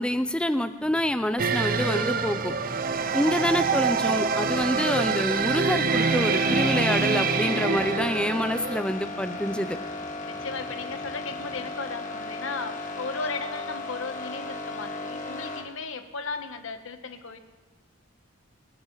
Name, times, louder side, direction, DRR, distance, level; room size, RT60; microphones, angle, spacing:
voice 1, 0.0-2.5 3.1-9.8, left 1 dB, 5° left, 10 dB, 0.6 m, -27 dB
sound 1, 0.8-11.6, equal, 25° right, 3.3 m, -52 dB
sound 2, 1.4-8.8, right 4 dB, 45° right, 0.7 m, -25 dB
voice 2, 3.0-3.4 10.3-17.4, left 4 dB, 75° left, 7 dB, 1.4 m, -36 dB
sound 3, 5.9-15.6, left 2 dB, 40° left, 1.9 m, -35 dB
25.5 x 11.5 x 4.1 m, 1.3 s
head